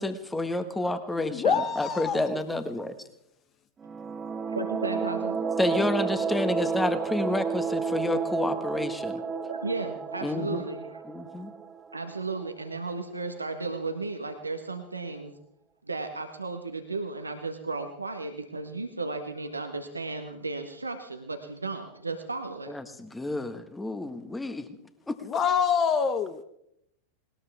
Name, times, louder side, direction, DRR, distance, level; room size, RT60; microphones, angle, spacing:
voice 1, 0.0-2.9 5.6-9.2 10.2-10.6 11.1-11.5 22.7-24.7 25.1-25.2, left 2 dB, 5° left, 10 dB, 1.6 m, -30 dB
voice 2, 1.2-2.4 25.3-26.4, left 6 dB, 30° left, 11 dB, 0.9 m, -26 dB
sound 1, 3.8-12.4, right 5 dB, 20° right, 1.0 m, -31 dB
voice 3, 4.5-5.4 9.3-10.9 11.9-15.3 15.8-22.7, right 3 dB, 80° right, 6 dB, 1.5 m, -34 dB
20.0 x 19.5 x 3.6 m, 0.75 s
figure-of-eight pair, 90°, 0 cm